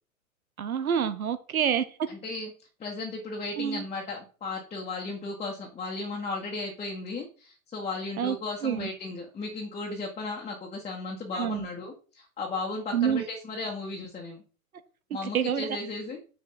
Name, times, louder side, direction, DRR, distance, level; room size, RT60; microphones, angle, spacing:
voice 1, 0.6-2.1 3.6-3.8 8.2-8.4 8.6-8.9 11.3-11.7 12.9-13.2 15.2-15.8, right 8 dB, 75° right, 12 dB, 1.1 m, -27 dB
voice 2, 2.1-2.5 2.8-14.4 15.1-16.2, left 3 dB, 15° left, -2 dB, 1.6 m, -35 dB
6.9 x 6.6 x 4.1 m, 0.37 s
figure-of-eight pair, 105°, 43 cm